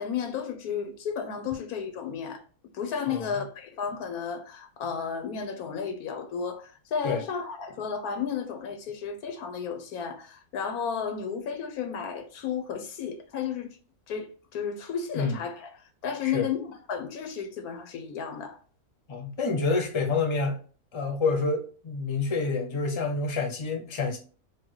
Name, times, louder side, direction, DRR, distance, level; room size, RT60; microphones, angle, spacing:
voice 1, 0.0-2.4 2.7-13.7 14.1-15.7 16.0-18.6, left 7 dB, 85° left, 1.3 m, -33 dB
voice 2, 19.1-20.6 20.9-24.2, left 4 dB, 25° left, 0.7 m, -28 dB
4.7 x 2.3 x 4.6 m
omnidirectional pair, 1.5 m